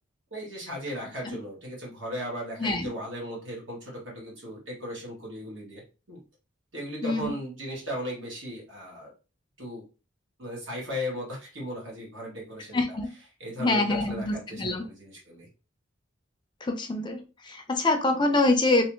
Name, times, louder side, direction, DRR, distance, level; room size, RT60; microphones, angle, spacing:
voice 1, 0.3-5.8 6.1-6.2 6.7-9.1 9.6-9.8 10.4-13.0 13.4-15.5, equal, 70° right, -3 dB, 1.7 m, -37 dB
voice 2, 2.6-2.9 7.0-7.3 12.7-13.1 13.6-14.8 16.6-18.9, left 2 dB, 25° left, 5 dB, 0.4 m, -25 dB
3.2 x 2.8 x 3.0 m, 0.33 s
head